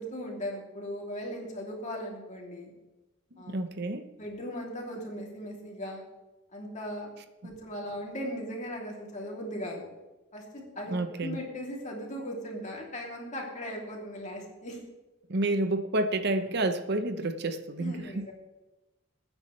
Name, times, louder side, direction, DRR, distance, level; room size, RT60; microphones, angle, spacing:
voice 1, 0.0-2.7 3.4-3.6 4.2-6.0 6.5-7.1 7.4-9.9 10.3-10.9 11.2-14.8 17.8-18.3, equal, 40° left, -1 dB, 3.0 m, -38 dB
voice 2, 3.5-4.1 7.4-7.5 10.9-11.4 15.3-18.2, right 2 dB, 55° right, 9 dB, 0.9 m, -29 dB
20.5 x 9.6 x 3.3 m, 1.1 s
head